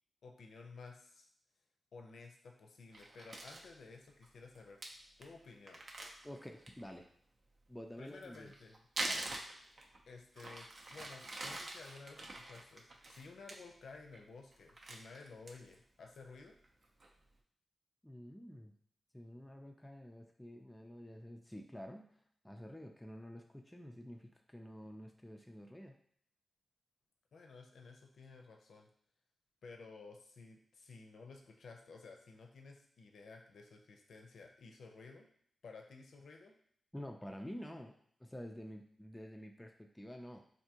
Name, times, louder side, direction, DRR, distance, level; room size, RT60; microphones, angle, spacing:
voice 1, 0.2-1.3 1.9-4.8 5.2-5.8 8.0-8.8 10.1-16.6 27.3-28.9 29.6-35.3 35.6-36.5, left 4 dB, 80° left, 2 dB, 0.5 m, -54 dB
Crumpling crinkling, 2.9-3.7 4.2-4.3 4.6-4.7 4.8-4.9 5.2-5.3 5.7-6.9 8.1-10.0 10.4-13.6 13.9-14.2 14.5-15.8 16.2-16.3 16.6-17.1, right 2 dB, 50° right, 0.5 m, -44 dB
voice 2, 6.2-7.1 7.7-8.5 9.0-9.8 18.0-18.7 19.1-22.1 22.4-25.9 36.9-40.4, equal, 10° left, 2 dB, 0.3 m, -49 dB
3.5 x 2.6 x 2.8 m, 0.65 s
cardioid pair, 70°, 0 cm